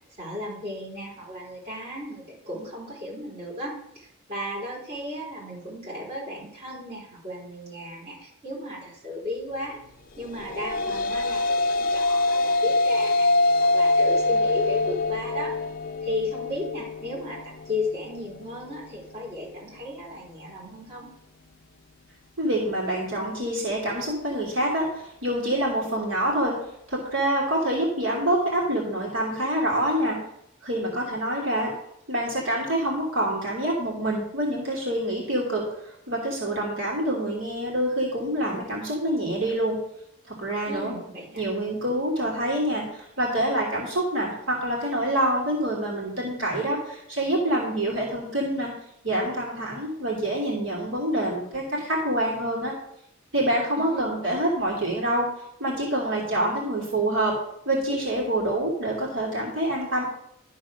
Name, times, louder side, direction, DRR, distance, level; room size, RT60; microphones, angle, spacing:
voice 1, 0.2-13.3 13.7-15.5 16.0-17.4 17.7-21.1 40.6-41.5 53.8-54.0, left 1 dB, 30° right, -5 dB, 3.9 m, -35 dB
sound 1, 10.3-18.9, left 2 dB, 45° left, 0.5 m, -24 dB
voice 2, 22.4-24.9 25.2-26.5 26.9-30.2 30.6-31.7 32.1-35.6 36.1-39.8 40.3-40.9 41.4-48.7 49.0-52.7 53.3-55.3 55.6-57.4 57.7-60.0, right 1 dB, 65° right, -3 dB, 3.0 m, -26 dB
12.0 x 4.0 x 6.4 m, 0.76 s
head